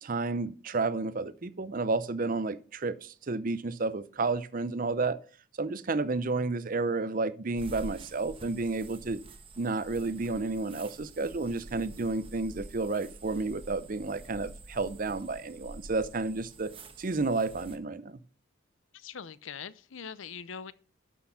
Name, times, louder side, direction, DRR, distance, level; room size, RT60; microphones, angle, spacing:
voice 1, 0.0-5.2 5.6-9.2 9.6-16.7 17.0-18.2, right 3 dB, 40° right, 0.6 m, -31 dB
sound 1, 7.6-17.8, right 2 dB, 25° right, 1.1 m, -48 dB
voice 2, 18.9-20.7, left 6 dB, 75° left, 0.6 m, -42 dB
11.5 x 6.4 x 5.6 m
head